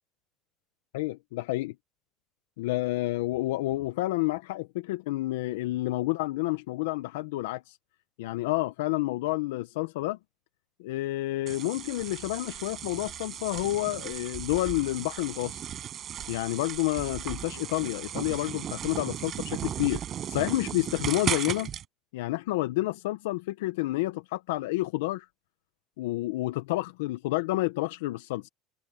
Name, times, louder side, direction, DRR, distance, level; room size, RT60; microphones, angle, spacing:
voice 1, 0.9-1.7 2.6-7.8 8.2-10.2 10.8-15.6 16.3-21.7 22.1-25.3 26.0-28.4, left 18 dB, 85° left, 0.8 m, -29 dB
sound 1, 11.5-21.8, right 10 dB, 45° right, 7.4 m, -36 dB
open air
supercardioid pair, 100°, 0 cm